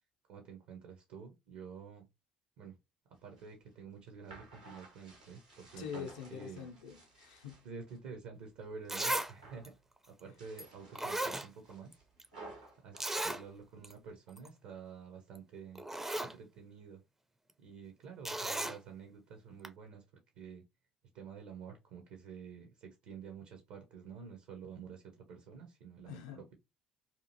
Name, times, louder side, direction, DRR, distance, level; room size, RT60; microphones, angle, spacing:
voice 1, 0.3-2.1 2.6-2.8 3.2-6.6 7.6-9.7 10.1-12.0 12.8-15.8 16.2-17.0 17.6-20.0 20.4-20.6 21.1-26.5, right 6 dB, 60° right, 0.6 m, -49 dB
sound 1, 3.2-8.0 8.4-9.0 9.2-9.8 10.2-14.1, right 2 dB, 85° right, 0.9 m, -56 dB
voice 2, 5.8-7.6 26.0-26.4, left 8 dB, 70° left, 0.5 m, -45 dB
Zipper (clothing), 8.4-8.5 8.9-9.3 9.6-9.7 10.6-10.7 11.0-11.9 12.2-12.3 13.0-13.4 13.8-13.9 14.3-14.5 15.4-15.5 15.8-16.3 18.2-18.8 19.6-19.7, right 1 dB, 10° right, 0.4 m, -36 dB
2.8 x 2.5 x 2.6 m
figure-of-eight pair, 50°, 4 cm